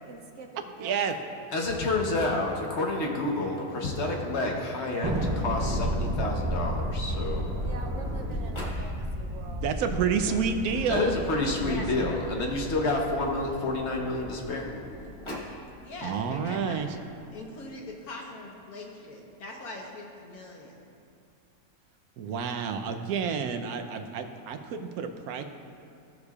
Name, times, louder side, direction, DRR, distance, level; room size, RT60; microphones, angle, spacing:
voice 1, 0.0-1.5 7.6-9.7 10.7-11.0, right 4 dB, 65° right, 4 dB, 0.8 m, -45 dB
voice 2, 0.8-1.1 9.5-11.2 11.6-12.1 16.0-16.9 22.2-25.4, right 6 dB, 85° right, 7 dB, 1.1 m, -30 dB
voice 3, 1.5-7.5 10.9-14.7, left 2 dB, 55° left, 0 dB, 1.2 m, -29 dB
Sliding door, 2.8-5.7 6.6-6.7 7.0-8.9 10.0-12.5 13.3-15.6, left 1 dB, 20° left, 1.2 m, -45 dB
Thunder, 5.0-15.7, equal, 30° right, 0.4 m, -33 dB
voice 4, 11.6-12.2 15.8-16.8 17.3-20.7, left 2 dB, 85° left, -1 dB, 1.7 m, -41 dB
16.5 x 6.5 x 2.4 m, 2.6 s
omnidirectional pair, 1.5 m